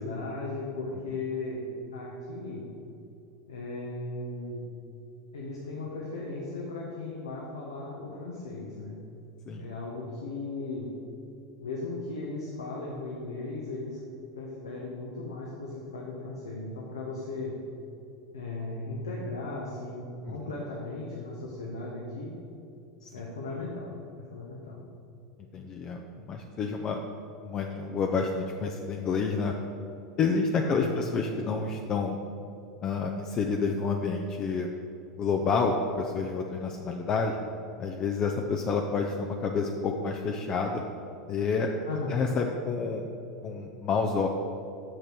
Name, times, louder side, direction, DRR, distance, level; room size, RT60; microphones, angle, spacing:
voice 1, 0.0-1.6 1.9-2.6 3.5-4.6 5.3-9.0 9.6-10.9 11.6-14.0 14.3-17.5 18.3-22.3 23.1-24.8 30.6-31.0 41.8-42.2, left 3 dB, 90° left, -3 dB, 1.2 m, -37 dB
voice 2, 25.5-27.0 27.4-29.5 30.2-32.2 32.8-34.7 35.2-37.4 37.8-40.8 41.3-41.7 42.1-43.1 43.4-44.3, left 4 dB, 40° left, 2 dB, 0.6 m, -29 dB
6.6 x 6.4 x 6.1 m, 2.7 s
hypercardioid pair, 90°, 2 cm